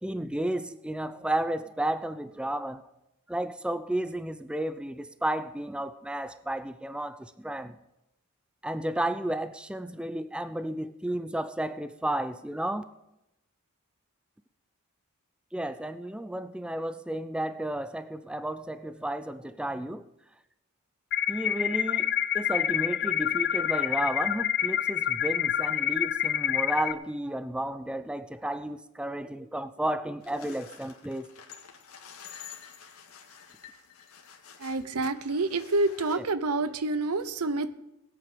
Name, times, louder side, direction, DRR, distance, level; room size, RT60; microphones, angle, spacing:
voice 1, 0.0-2.8 3.3-7.8 8.6-12.8 15.5-20.0 21.3-31.3, right 1 dB, 5° right, 12 dB, 0.4 m, -32 dB
sound 1, 21.1-26.9, left 10 dB, 50° left, 0.5 m, -27 dB
sound 2, 30.2-36.2, left 7 dB, 75° left, 1.8 m, -49 dB
voice 2, 34.6-37.7, right 2 dB, 85° right, 13 dB, 0.8 m, -28 dB
19.5 x 8.5 x 5.1 m, 0.91 s
head